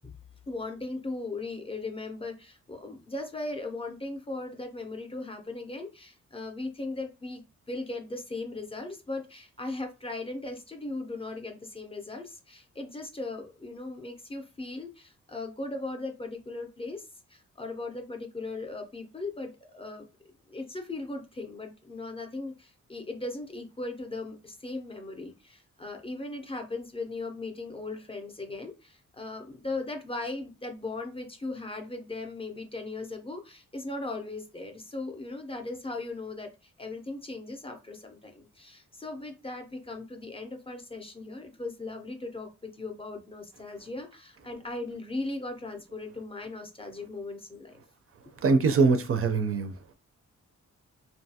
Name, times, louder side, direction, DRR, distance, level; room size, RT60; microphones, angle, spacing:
voice 1, 0.5-7.4 7.7-20.1 20.5-47.8, left 2 dB, 20° left, 0.4 m, -38 dB
voice 2, 48.4-49.7, right 4 dB, 50° right, 0.4 m, -23 dB
2.7 x 2.3 x 2.7 m
wide cardioid pair, 130°, 30 cm